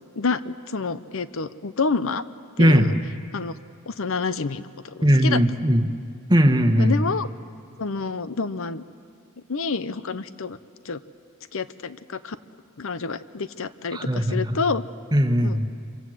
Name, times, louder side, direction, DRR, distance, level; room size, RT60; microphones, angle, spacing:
voice 1, 0.2-2.2 2.6-2.9 3.3-3.6 3.9-5.4 6.8-7.3 7.8-8.8 9.5-10.6 10.8-11.0 11.5-12.4 12.8-14.8 15.4-15.6, left 4 dB, 65° left, 14 dB, 0.8 m, -28 dB
voice 2, 2.6-2.9 5.0-5.9 6.3-7.0 13.9-14.6 15.1-15.6, equal, 20° right, 7 dB, 1.3 m, -19 dB
26.0 x 25.0 x 7.9 m, 2.3 s
head